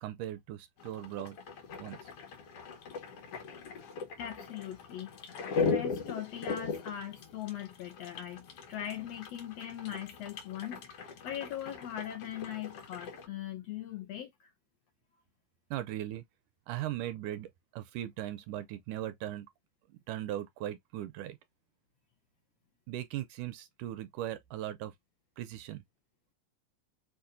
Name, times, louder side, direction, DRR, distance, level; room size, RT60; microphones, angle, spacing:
voice 1, 0.0-1.4 1.8-2.1 15.7-16.3 16.7-19.5 19.9-21.4 22.9-24.9 25.4-25.8, right 13 dB, 80° right, 2.0 m, -39 dB
sound 1, 0.8-13.3, left 4 dB, 55° left, 1.9 m, -39 dB
voice 2, 4.2-5.1 5.6-14.5, left 11 dB, 75° left, 1.5 m, -40 dB
6.8 x 2.5 x 2.6 m
omnidirectional pair, 3.7 m